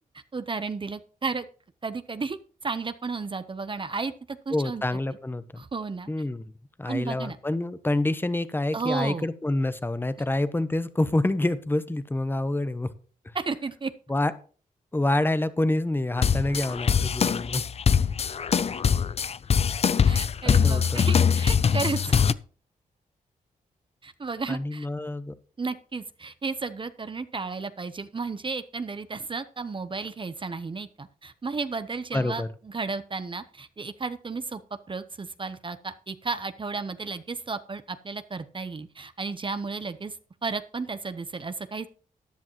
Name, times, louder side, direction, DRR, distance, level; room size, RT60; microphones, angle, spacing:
voice 1, 0.3-1.5 1.8-2.4 2.6-4.8 5.6-6.1 6.9-7.4 8.7-9.3 13.3-13.9 20.0-22.2 24.0-24.9 25.6-34.6 34.9-40.2 40.4-41.9, right 4 dB, 35° right, 12 dB, 0.8 m, -33 dB
voice 2, 4.5-5.6 6.1-6.5 6.8-12.9 14.1-14.3 14.9-17.7 20.4-21.1 24.5-25.3 32.1-32.5, left 2 dB, 15° left, 13 dB, 1.0 m, -27 dB
sound 1, 16.2-22.3, left 6 dB, 45° left, 0.5 m, -23 dB
14.0 x 10.0 x 3.0 m, 0.40 s
cardioid pair, 75°, 15 cm